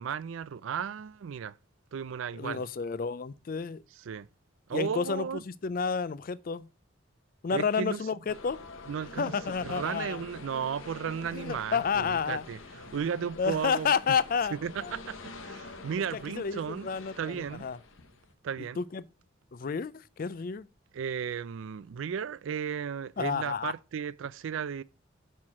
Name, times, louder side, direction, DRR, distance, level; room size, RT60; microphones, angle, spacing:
voice 1, 0.0-1.6 1.9-2.6 4.0-4.3 4.7-5.4 7.5-8.0 8.9-9.3 9.6-13.9 14.5-16.9 17.2-17.7 18.4-18.8 20.9-24.8, right 7 dB, 75° right, 0.4 m, -35 dB
voice 2, 2.3-3.8 4.7-6.7 7.4-8.6 9.2-10.2 11.3-12.4 13.4-14.6 14.8-14.9 16.4-17.8 18.8-19.1 19.5-20.7 23.2-23.7, left 6 dB, 45° left, 0.4 m, -30 dB
sound 1, 8.3-18.3, left 3 dB, 80° left, 1.1 m, -46 dB
5.7 x 4.5 x 6.2 m
head